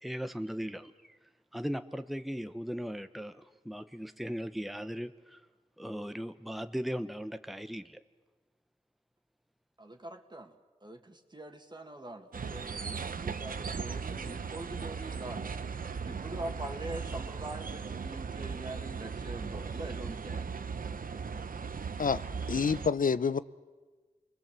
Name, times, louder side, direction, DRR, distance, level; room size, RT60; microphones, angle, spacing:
voice 1, 0.0-1.2 1.5-5.4 5.8-8.0, equal, ahead, 0.9 m, -38 dB
voice 2, 9.8-10.6 10.8-15.5 16.0-20.4, right 1 dB, 30° right, 2.2 m, -43 dB
sound 1, 12.3-22.9, right 5 dB, 80° right, 0.9 m, -38 dB
voice 3, 22.5-23.4, left 6 dB, 75° left, 0.8 m, -27 dB
29.5 x 20.5 x 7.6 m
wide cardioid pair, 65°, 14 cm